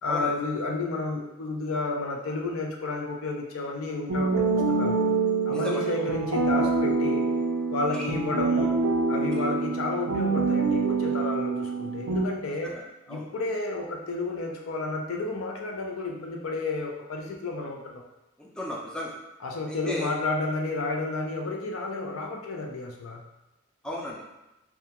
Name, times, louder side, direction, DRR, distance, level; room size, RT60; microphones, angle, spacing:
voice 1, 0.0-5.0 5.5-7.2 7.7-8.8 9.1-12.8 13.1-18.0 19.4-23.2, left 3 dB, 90° left, 1 dB, 0.4 m, -31 dB
sound 1, 4.1-12.3, right 4 dB, 85° right, 0.4 m, -26 dB
voice 2, 5.5-6.1 7.9-8.0 12.6-12.8 13.1-13.2 18.4-19.1 19.7-20.1 23.8-24.2, left 1 dB, 5° left, -4 dB, 0.3 m, -35 dB
2.3 x 2.1 x 2.8 m, 0.96 s
head